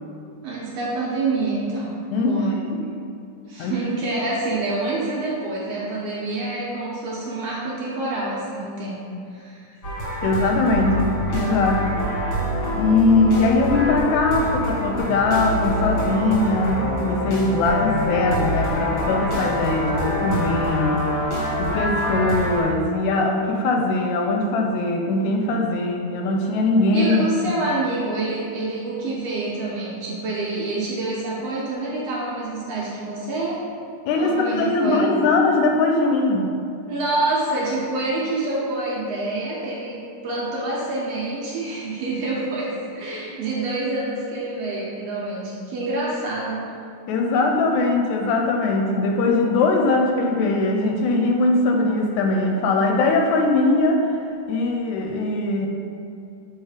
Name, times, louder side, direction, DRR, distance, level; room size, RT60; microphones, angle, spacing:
voice 1, 0.4-1.9 2.2-2.5 3.5-9.0 9.3-9.7 26.9-33.6 34.2-35.1 36.9-46.7, right 2 dB, 70° right, -6 dB, 1.7 m, -27 dB
voice 2, 2.1-2.9 3.6-3.8 10.2-12.0 12.7-21.2 21.6-27.6 34.1-36.5 47.1-54.2 54.5-55.7, left 2 dB, 80° left, 2 dB, 1.8 m, -21 dB
sound 1, 9.8-22.6, equal, 35° left, 1.2 m, -25 dB
6.4 x 3.3 x 4.8 m, 2.5 s
omnidirectional pair, 3.5 m